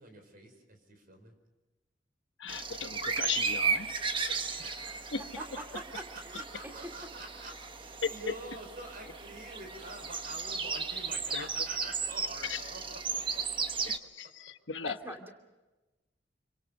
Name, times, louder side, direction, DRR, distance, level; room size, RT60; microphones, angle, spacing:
voice 1, 0.0-1.3 4.6-5.2 5.6-13.6, right 2 dB, 55° right, 5.1 m, -47 dB
voice 2, 2.4-3.9 4.2-4.6 5.1-5.2 8.0-8.4 11.3-11.5 12.4-12.6 13.9-15.0, left 6 dB, 80° left, 1.1 m, -36 dB
sound 1, 2.5-14.0, right 5 dB, 30° right, 1.2 m, -35 dB
voice 3, 5.9-6.4 14.8-15.3, right 1 dB, 10° right, 2.7 m, -44 dB
28.0 x 25.0 x 5.5 m
head